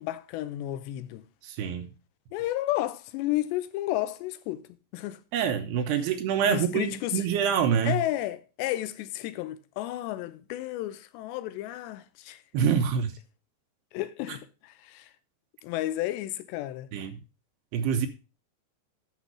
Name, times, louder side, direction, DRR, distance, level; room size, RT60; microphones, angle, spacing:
voice 1, 0.0-1.2 2.3-4.6 4.9-5.2 6.5-7.2 7.8-12.4 13.9-15.1 15.6-16.9, left 15 dB, 85° left, 2.8 m, -32 dB
voice 2, 1.4-1.9 5.3-8.0 12.5-13.1 16.9-17.2 17.7-18.1, right 7 dB, 80° right, 2.6 m, -26 dB
10.5 x 6.6 x 4.7 m
omnidirectional pair, 5.0 m